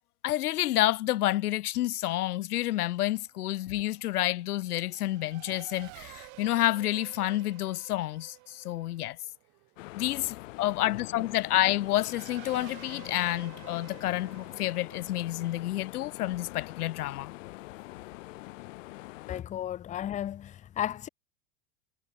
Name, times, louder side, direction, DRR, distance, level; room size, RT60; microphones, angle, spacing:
voice 1, 0.2-9.2 9.9-17.3, left 15 dB, 85° left, 1.6 m, -29 dB
Race car auto racing / Accelerating revving vroom, 3.1-17.2, right 36 dB, 40° right, 7.0 m, -52 dB
sound 1, 9.8-19.4, left 19 dB, 55° left, 1.7 m, -44 dB
voice 2, 19.3-21.1, left 11 dB, 15° left, 1.1 m, -34 dB
supercardioid pair, 165°, 44 cm